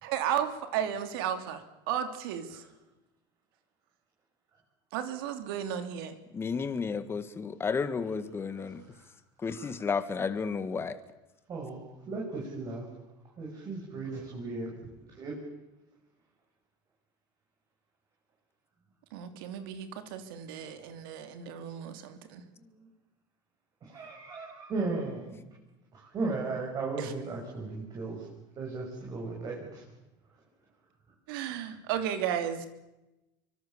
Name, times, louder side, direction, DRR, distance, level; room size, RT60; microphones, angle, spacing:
voice 1, 0.0-2.6 4.9-6.2 19.1-22.4 27.0-27.1 31.3-32.7, right 9 dB, 80° right, 9 dB, 2.9 m, -34 dB
voice 2, 6.3-8.8 9.4-10.9, left 5 dB, 20° left, 11 dB, 1.7 m, -32 dB
voice 3, 11.5-11.8 12.1-12.8 13.4-14.7 15.1-15.4 23.9-25.4 26.1-28.2 28.6-29.8, right 3 dB, 35° right, -2 dB, 6.7 m, -35 dB
24.5 x 23.5 x 7.2 m, 0.98 s
supercardioid pair, 135°, 12 cm